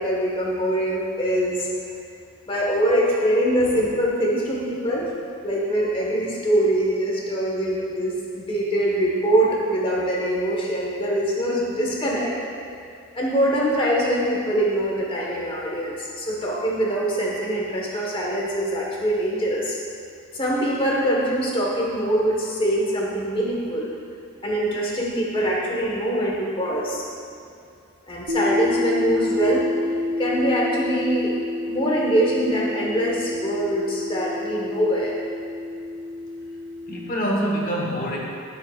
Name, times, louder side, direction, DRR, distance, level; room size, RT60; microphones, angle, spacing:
voice 1, 0.0-1.7 2.5-5.1 5.4-12.3 13.1-19.7 20.3-23.9 24.4-27.0 28.1-29.7 30.2-31.3 31.7-35.1, right 1 dB, 25° left, -4 dB, 1.4 m, -23 dB
sound 1, 28.3-37.1, left 2 dB, 55° right, 0.6 m, -28 dB
voice 2, 36.9-38.2, equal, 40° left, -3 dB, 1.2 m, -26 dB
12.5 x 6.6 x 2.5 m, 2.4 s
head